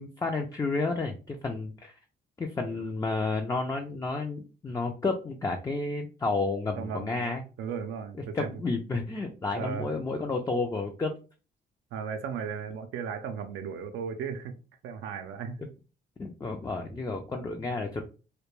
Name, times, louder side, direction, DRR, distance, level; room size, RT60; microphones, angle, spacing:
voice 1, 0.0-1.9 2.4-7.4 8.3-11.1 16.2-18.0, left 3 dB, 15° left, 0.4 m, -31 dB
voice 2, 6.8-8.5 9.5-9.9 11.9-14.5 14.8-15.6, right 6 dB, 85° right, 0.4 m, -36 dB
2.2 x 2.2 x 3.0 m
cardioid pair, 90°, 20 cm